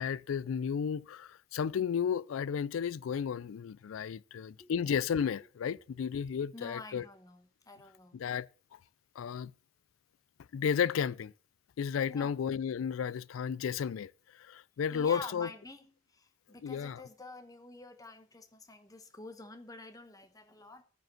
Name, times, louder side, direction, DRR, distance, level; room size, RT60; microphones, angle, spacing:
voice 1, 0.0-7.0 8.1-8.5 9.2-9.5 10.5-11.3 11.8-14.1 14.4-15.5 16.6-17.0, left 7 dB, 85° left, 0.4 m, -33 dB
voice 2, 6.5-8.2 12.1-12.3 14.9-20.8, left 3 dB, 20° left, 1.1 m, -48 dB
9.2 x 5.2 x 7.5 m
head